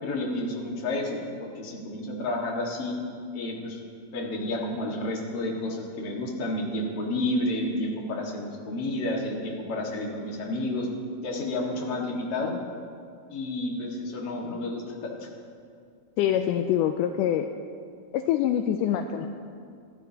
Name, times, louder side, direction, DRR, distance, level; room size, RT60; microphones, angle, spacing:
voice 1, 0.0-3.0 3.3-3.8 4.1-10.9 11.2-12.6 13.3-15.3, left 1 dB, 45° left, -1 dB, 2.4 m, -30 dB
voice 2, 16.2-17.5 18.1-19.3, left 10 dB, 80° left, 7 dB, 1.9 m, -25 dB
27.0 x 12.5 x 2.9 m, 2.3 s
omnidirectional pair, 4.1 m